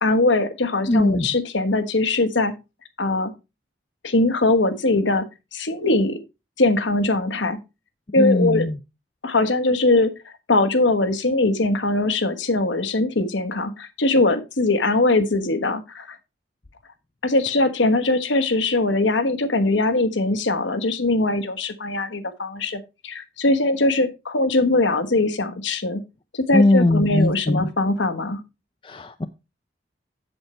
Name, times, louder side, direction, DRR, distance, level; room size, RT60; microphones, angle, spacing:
voice 1, 0.0-2.5 3.0-3.3 4.0-6.2 6.6-7.6 8.1-8.7 9.2-16.2 17.2-26.0 26.3-28.4, left 2 dB, 85° left, 8 dB, 1.3 m, -21 dB
voice 2, 0.9-1.3 8.2-8.8 26.5-27.7 28.8-29.3, left 2 dB, 25° left, 8 dB, 0.5 m, -19 dB
7.9 x 7.4 x 4.3 m, 0.26 s
head